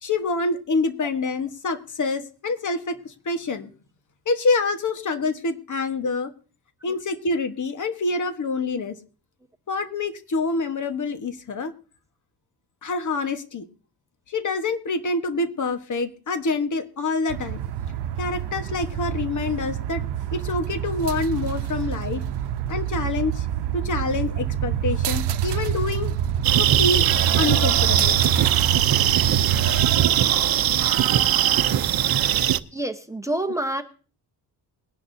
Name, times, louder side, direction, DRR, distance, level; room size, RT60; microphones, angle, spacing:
voice 1, 0.0-3.7 4.2-6.3 6.8-9.0 9.7-11.7 12.8-13.7 14.3-17.6 18.2-20.0 20.3-22.2 22.7-23.5 23.7-26.1 26.6-27.1 27.4-28.2, left 3 dB, 50° left, 8 dB, 1.3 m, -26 dB
sound 1, 17.3-30.1, right 9 dB, 90° right, 0.8 m, -27 dB
sound 2, 26.4-32.6, right 11 dB, 60° right, 0.7 m, -20 dB
voice 2, 32.7-33.8, right 1 dB, 10° right, 8 dB, 1.0 m, -27 dB
21.0 x 10.5 x 2.7 m, 0.37 s
cardioid pair, 105°, 40 cm